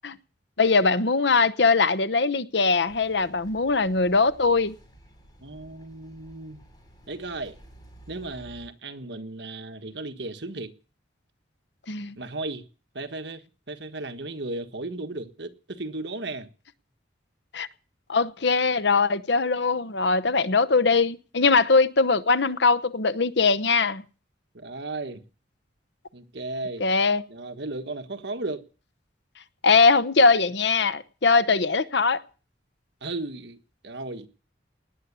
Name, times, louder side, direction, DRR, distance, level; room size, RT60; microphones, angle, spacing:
voice 1, 0.6-4.8 11.9-12.1 17.5-17.7 18.1-24.0 26.8-27.2 29.6-32.2, left 4 dB, 65° left, 0.9 m, -21 dB
sound 1, 2.9-8.7, right 1 dB, 20° left, 7.1 m, -52 dB
voice 2, 5.4-6.6 7.1-7.6 8.1-10.7 12.2-12.6 12.9-16.5 24.5-25.2 26.1-26.9 27.3-28.6 33.0-33.6 33.8-34.3, right 2 dB, 60° right, 1.5 m, -35 dB
19.0 x 8.3 x 8.3 m
head